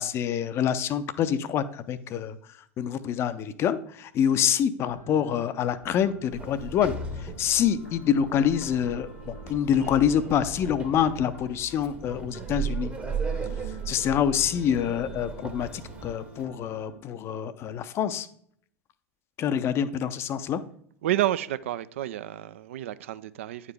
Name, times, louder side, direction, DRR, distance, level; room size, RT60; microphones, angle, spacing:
voice 1, 0.0-2.4 2.8-12.9 13.6-18.3 19.4-20.6, left 9 dB, 35° left, 0.5 m, -26 dB
sound 1, 4.8-17.0, left 1 dB, 90° left, 1.1 m, -47 dB
Sliding door, 6.3-16.5, right 5 dB, 15° right, 0.9 m, -37 dB
voice 2, 21.0-23.7, right 14 dB, 60° right, 0.4 m, -30 dB
9.4 x 4.8 x 3.4 m
figure-of-eight pair, 85°, 8 cm